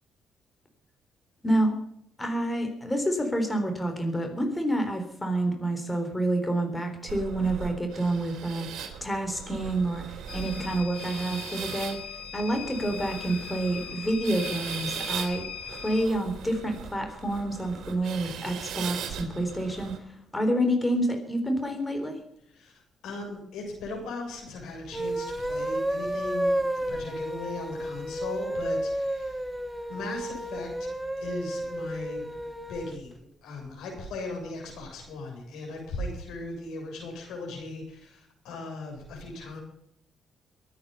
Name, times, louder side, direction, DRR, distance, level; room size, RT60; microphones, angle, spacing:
voice 1, 1.4-1.8 2.2-12.0 12.3-15.5 15.8-22.2, right 1 dB, 15° left, 4 dB, 3.9 m, -28 dB
sound 1, 7.1-20.0, right 8 dB, 80° right, 3.1 m, -39 dB
sound 2, 10.3-16.1, left 8 dB, 65° left, 2.2 m, -40 dB
voice 2, 23.0-26.5 26.9-29.4 29.9-30.9 31.2-32.3 32.7-33.1 33.4-39.6, left 2 dB, 85° left, 1 dB, 7.5 m, -38 dB
sound 3, 24.8-33.0, right 1 dB, 5° right, 1.4 m, -31 dB
22.5 x 9.6 x 5.6 m, 0.74 s
cardioid pair, 90°, 0 cm